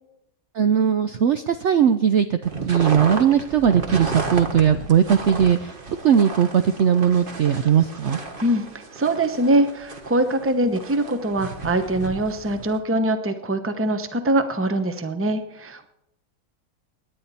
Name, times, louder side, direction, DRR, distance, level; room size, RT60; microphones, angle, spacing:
voice 1, 0.6-2.4 2.7-5.7 6.0-8.2, right 8 dB, 80° right, 9 dB, 0.6 m, -19 dB
sound 1, 2.4-12.8, right 3 dB, 35° right, 1.3 m, -33 dB
voice 2, 8.9-15.9, right 1 dB, 15° right, 8 dB, 0.6 m, -23 dB
18.0 x 10.0 x 4.2 m, 0.81 s
omnidirectional pair, 1.9 m